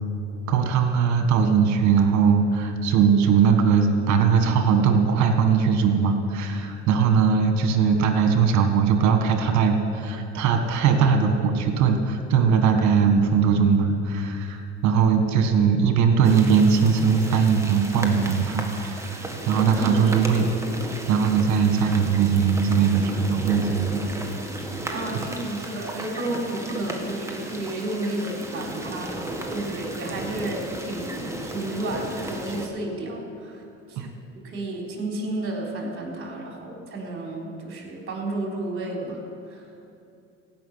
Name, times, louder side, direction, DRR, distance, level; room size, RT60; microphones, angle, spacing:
voice 1, 0.5-20.5 21.1-24.0 34.0-34.1, right 6 dB, 60° right, 6 dB, 1.8 m, -20 dB
sound 1, 16.2-32.7, right 1 dB, 10° right, 1.9 m, -34 dB
voice 2, 24.9-33.6 33.9-34.1 34.4-39.2 39.5-39.6, right 1 dB, 40° right, -1 dB, 3.8 m, -32 dB
15.5 x 6.1 x 9.4 m, 2.6 s
hypercardioid pair, 80°, 32 cm